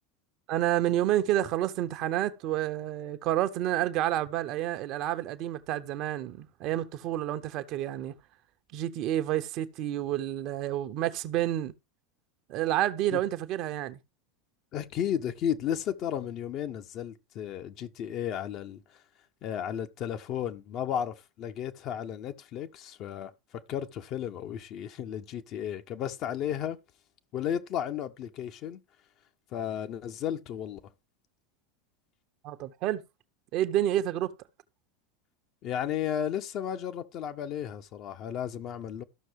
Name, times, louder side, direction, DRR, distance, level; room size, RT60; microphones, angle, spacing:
voice 1, 0.5-8.1 8.7-11.7 12.5-14.0 32.4-33.0 33.5-34.3, right 13 dB, 45° right, 1.1 m, -29 dB
voice 2, 14.7-18.8 19.4-23.3 23.7-26.8 27.3-28.8 29.5-30.8 35.6-39.0, left 9 dB, 40° left, 1.3 m, -33 dB
13.5 x 6.5 x 4.7 m
figure-of-eight pair, 80°, 0 cm